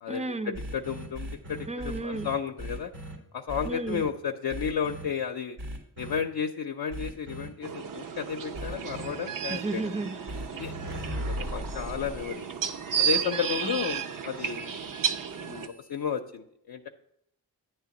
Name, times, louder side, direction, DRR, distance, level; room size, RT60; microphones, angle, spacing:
voice 1, 0.1-0.6 1.7-2.3 3.6-4.1 9.5-10.2 11.2-11.3 13.6-13.8, right 2 dB, 20° right, 12 dB, 0.5 m, -34 dB
sound 1, 0.5-3.2 3.5-4.1 4.5-5.1 5.6-6.2 6.9-7.5 8.5-9.1 10.3-16.1, equal, 85° right, 1.8 m, -39 dB
voice 2, 0.7-2.9 3.3-5.6 6.0-9.8 10.5-12.4 13.0-14.8 15.4-16.9, left 7 dB, 70° left, 3 dB, 0.6 m, -33 dB
sound 2, 7.6-15.7, right 8 dB, 55° right, 0.7 m, -33 dB
9.6 x 3.4 x 7.0 m, 0.74 s
cardioid pair, 50°, 38 cm